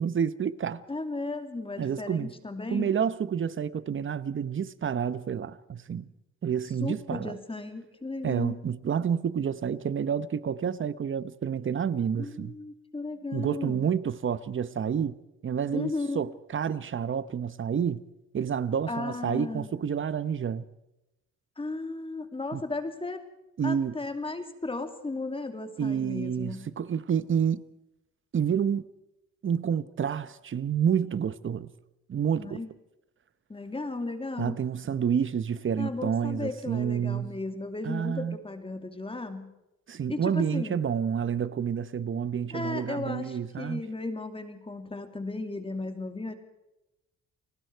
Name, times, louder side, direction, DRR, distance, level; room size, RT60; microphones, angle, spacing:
voice 1, 0.0-0.8 1.8-2.3 2.7-6.1 6.4-7.3 8.2-12.5 13.3-15.2 15.4-18.0 18.3-20.7 22.5-22.6 23.6-24.0 25.8-27.6 28.3-28.9 29.4-31.7 32.1-32.6 34.4-37.3 37.8-38.4 39.9-43.8, right 7 dB, 40° right, 1.0 m, -29 dB
voice 2, 0.9-2.9 6.8-8.6 12.1-13.8 15.7-16.2 18.9-19.7 21.6-23.2 23.6-26.7 32.4-32.7 33.5-34.6 35.8-39.5 40.1-40.8 42.5-46.3, left 2 dB, 20° left, 2.7 m, -35 dB
29.0 x 19.5 x 4.6 m
cardioid pair, 90°, 30 cm